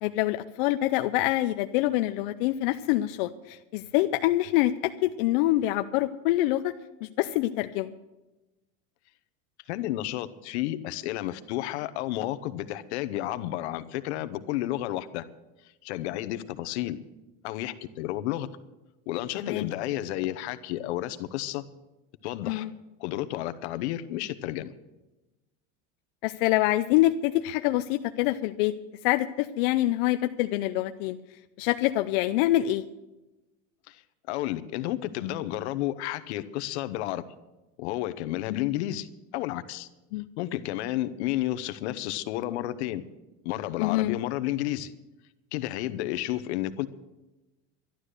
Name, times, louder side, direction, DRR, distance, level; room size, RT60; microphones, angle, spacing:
voice 1, 0.0-6.7 7.0-7.9 19.4-19.7 22.4-22.7 26.2-28.7 29.0-31.2 31.6-32.8 38.5-38.7 40.1-40.3 43.8-44.2, left 16 dB, 45° left, 8 dB, 0.4 m, -26 dB
voice 2, 9.7-15.2 15.8-17.0 17.4-18.5 19.1-21.6 22.2-22.7 23.0-24.7 33.9-34.0 34.3-37.2 37.8-39.1 39.3-39.9 40.4-43.0 43.4-44.9 45.5-46.9, left 14 dB, 65° left, 13 dB, 0.9 m, -31 dB
12.0 x 11.5 x 6.6 m, 1.0 s
supercardioid pair, 175°, 36 cm